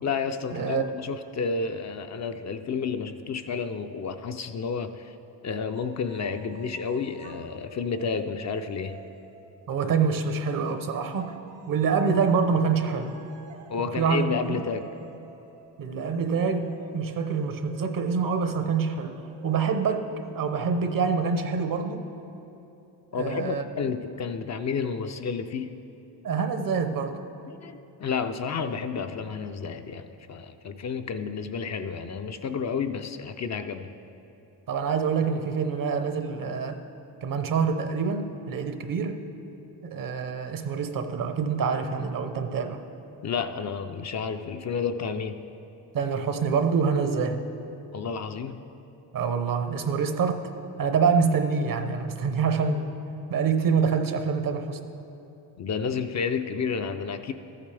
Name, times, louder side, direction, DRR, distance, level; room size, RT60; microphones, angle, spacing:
voice 1, 0.0-5.2 5.4-9.0 13.7-14.9 23.1-25.7 27.5-33.9 43.2-45.4 47.9-48.6 55.6-57.3, left 5 dB, 40° left, 7 dB, 0.5 m, -31 dB
voice 2, 0.5-0.8 9.7-11.4 11.7-13.1 13.8-14.6 15.8-22.1 23.1-23.6 26.2-27.2 34.7-36.8 37.2-39.2 39.8-42.8 45.9-47.4 49.1-50.5 50.8-52.9 53.3-54.8, right 5 dB, 50° right, 8 dB, 0.8 m, -26 dB
sound 1, 5.7-9.7 10.6-21.9, right 5 dB, 85° right, 1.2 m, -50 dB
13.5 x 8.7 x 3.4 m, 2.9 s
cardioid pair, 85°, 42 cm